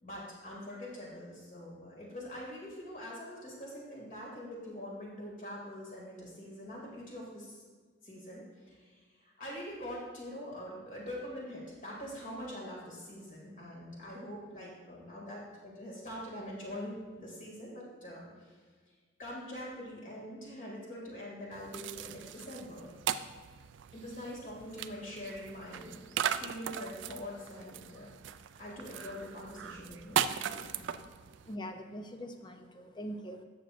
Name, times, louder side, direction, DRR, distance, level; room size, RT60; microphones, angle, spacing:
voice 1, 0.0-7.6 8.0-18.6 19.2-22.9 23.9-26.0 26.4-28.1 28.6-31.0, equal, 40° left, -3 dB, 2.4 m, -44 dB
sound 1, 21.5-31.6, right 9 dB, 60° right, 0.3 m, -38 dB
voice 2, 31.4-33.4, equal, 20° left, 6 dB, 0.5 m, -42 dB
11.5 x 7.5 x 2.6 m, 1.5 s
head